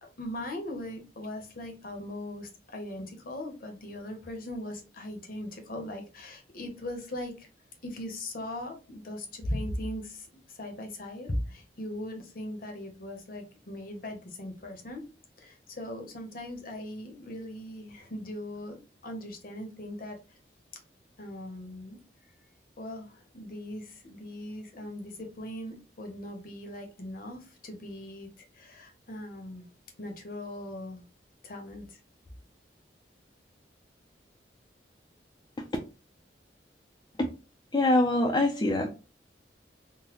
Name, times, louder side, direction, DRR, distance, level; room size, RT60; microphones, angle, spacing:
voice 1, 0.0-7.5 7.8-15.1 15.4-20.2 21.2-22.0 22.8-29.7 30.0-31.0 31.4-32.0, left 1 dB, 55° left, 4 dB, 0.8 m, -39 dB
voice 2, 37.7-38.9, left 2 dB, 25° left, 1 dB, 0.4 m, -24 dB
3.8 x 2.1 x 2.8 m, 0.31 s
head